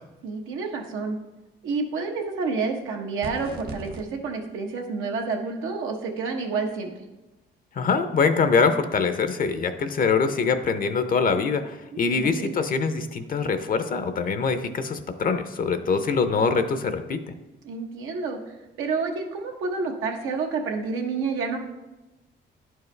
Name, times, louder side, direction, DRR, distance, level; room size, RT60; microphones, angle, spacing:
voice 1, 0.2-1.2 1.6-6.9 11.9-12.5 17.6-21.6, right 4 dB, 90° right, 2 dB, 1.0 m, -29 dB
sound 1, 3.2-4.0, right 2 dB, 50° right, 1.0 m, -37 dB
voice 2, 7.7-17.3, left 5 dB, 45° left, 9 dB, 0.6 m, -24 dB
10.0 x 4.7 x 3.2 m, 1.0 s
cardioid pair, 90°, 20 cm